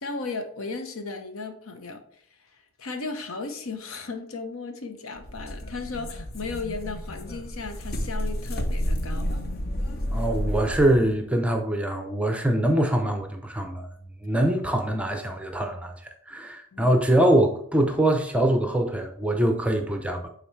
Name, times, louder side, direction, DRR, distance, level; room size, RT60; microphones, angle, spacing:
voice 1, 0.0-2.0 2.5-9.3 16.7-16.9, left 3 dB, 75° left, 0.8 m, -35 dB
sound 1, 5.2-11.1, equal, 45° left, 0.7 m, -30 dB
voice 2, 10.1-13.9 14.2-15.9 16.3-20.3, right 1 dB, 5° right, 0.5 m, -23 dB
8.9 x 3.9 x 3.2 m
head